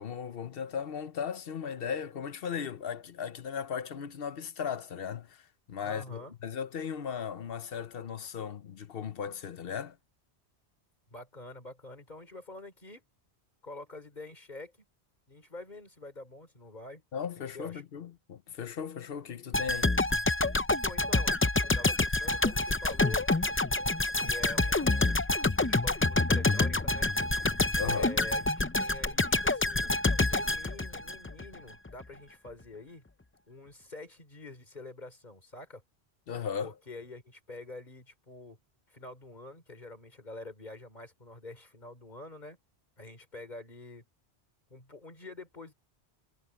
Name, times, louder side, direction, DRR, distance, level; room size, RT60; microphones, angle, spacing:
voice 1, 0.0-10.0 17.1-19.9 27.8-28.1 36.3-36.7, left 7 dB, 65° left, 1.0 m, -37 dB
voice 2, 5.8-6.3 11.1-13.0 13.6-14.9 15.3-17.0 17.5-17.8 20.8-23.2 24.1-27.1 27.8-29.9 30.3-33.1 33.5-35.8 36.6-38.6 38.9-42.6 43.0-44.1 44.7-45.7, left 2 dB, 45° left, 3.7 m, -46 dB
sound 1, 19.5-31.5 31.9-32.0, left 2 dB, 20° left, 0.3 m, -27 dB
omnidirectional pair, 1.1 m